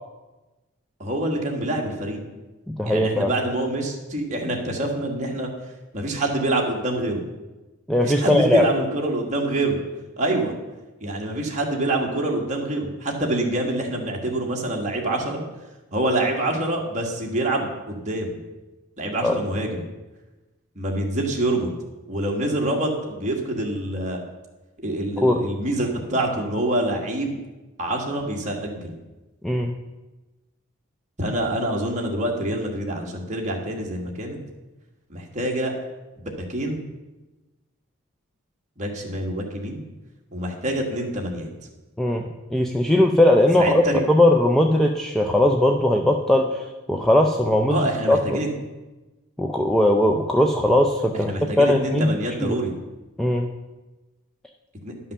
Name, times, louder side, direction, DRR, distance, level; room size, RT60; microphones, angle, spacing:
voice 1, 1.0-2.2 2.8-5.5 5.9-7.2 8.0-9.8 10.2-10.5 11.0-15.4 15.9-18.4 19.0-19.8 20.7-21.7 22.1-24.2 24.8-27.4 27.8-28.9 31.2-34.4 35.1-35.7 36.2-36.8 38.8-39.8 40.3-41.5 43.6-44.0 47.7-48.5 51.2-52.7 54.8-54.9, right 1 dB, 35° right, 0 dB, 1.6 m, -26 dB
voice 2, 2.7-3.3 7.9-8.6 19.2-19.4 25.2-25.4 29.4-29.7 42.0-48.4 49.4-51.3 51.6-52.1 52.4-52.6 53.2-53.5, left 1 dB, ahead, 2 dB, 0.4 m, -19 dB
11.0 x 5.6 x 6.7 m, 1.1 s
head